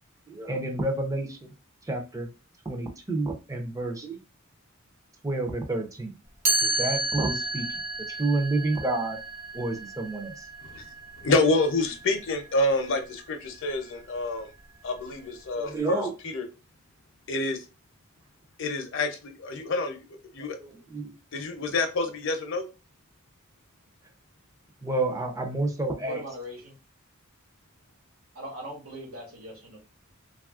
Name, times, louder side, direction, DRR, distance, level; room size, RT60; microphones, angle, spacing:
voice 1, 0.3-1.5 1.9-2.3 2.6-4.2 5.2-6.2 6.6-7.8 8.1-9.2 9.5-10.5 15.6-16.1 20.6-21.1 24.8-26.2, right 2 dB, 15° right, 0.5 m, -29 dB
Chime, 6.5-12.3, right 2 dB, 45° right, 0.9 m, -31 dB
voice 2, 11.2-14.5 14.8-16.4 17.3-17.6 18.6-20.0 20.3-20.6 21.3-22.6, left 2 dB, 60° left, 0.6 m, -27 dB
voice 3, 26.1-26.8 28.3-29.8, equal, 85° right, 1.2 m, -40 dB
3.0 x 2.4 x 2.4 m
head